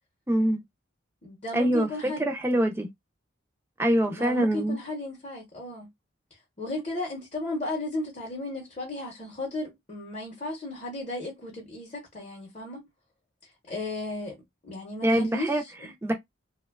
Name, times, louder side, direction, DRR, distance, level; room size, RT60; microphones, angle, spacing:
voice 1, 0.3-0.6 1.5-2.9 3.8-4.8 15.0-15.6 16.0-16.1, right 1 dB, 10° right, 0.4 m, -24 dB
voice 2, 1.2-2.3 4.0-5.9 6.6-12.9 13.7-15.9, left 2 dB, 30° left, 0.7 m, -35 dB
2.8 x 2.1 x 2.2 m
head